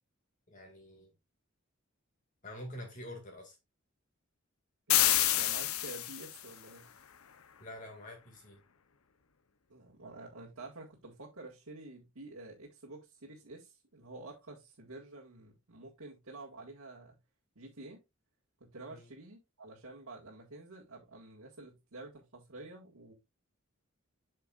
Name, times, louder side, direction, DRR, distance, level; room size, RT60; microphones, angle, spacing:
voice 1, 0.5-1.1 2.4-3.6 7.6-8.6 18.9-19.1, left 1 dB, 35° left, 2.2 m, -46 dB
sound 1, 4.9-6.4, left 13 dB, 85° left, 0.7 m, -28 dB
voice 2, 4.9-6.9 9.7-17.2 17.6-18.0 18.6-23.1, right 2 dB, 90° right, 1.8 m, -49 dB
8.0 x 6.5 x 2.4 m
head